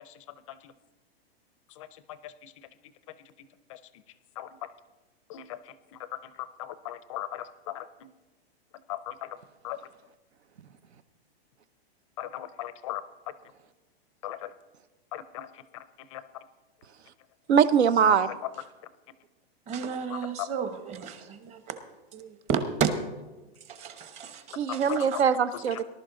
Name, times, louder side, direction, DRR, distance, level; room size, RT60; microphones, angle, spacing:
voice 1, 4.4-4.7 5.3-5.6 6.4-7.9 8.9-9.3 9.6-9.8 12.2-13.0 14.2-14.5 15.1-15.5 16.1-16.2 20.4-20.5 24.7-25.1, left 13 dB, 30° left, 14 dB, 0.4 m, -37 dB
voice 2, 17.5-18.3 24.5-25.8, right 7 dB, 85° right, 14 dB, 0.9 m, -22 dB
voice 3, 19.7-21.8 22.1-22.9 23.7-25.2, right 6 dB, 20° right, 9 dB, 0.9 m, -32 dB
19.0 x 11.5 x 3.8 m, 1.1 s
hypercardioid pair, 155°, 32 cm